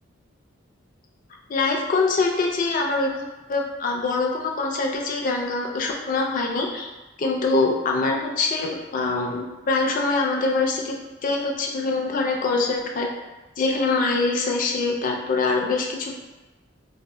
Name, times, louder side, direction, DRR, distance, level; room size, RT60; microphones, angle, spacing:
voice 1, 1.5-6.9 7.2-11.0 11.2-13.1 13.6-16.2, left 3 dB, 45° left, 0 dB, 0.3 m, -24 dB
2.1 x 2.0 x 3.6 m, 1.1 s
head